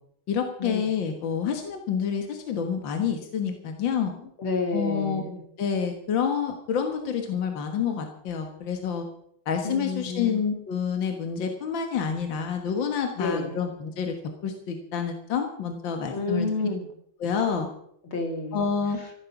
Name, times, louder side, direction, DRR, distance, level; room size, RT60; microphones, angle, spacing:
voice 1, 0.3-4.1 4.7-5.2 5.6-9.1 9.5-14.2 14.4-16.7 17.2-17.7 18.5-19.0, left 7 dB, 70° left, 5 dB, 2.2 m, -28 dB
voice 2, 4.2-5.4 9.6-10.4 13.2-13.6 16.1-16.8 18.0-18.7, left 3 dB, 85° left, 3 dB, 3.2 m, -30 dB
14.5 x 12.0 x 6.0 m, 0.69 s
omnidirectional pair, 2.2 m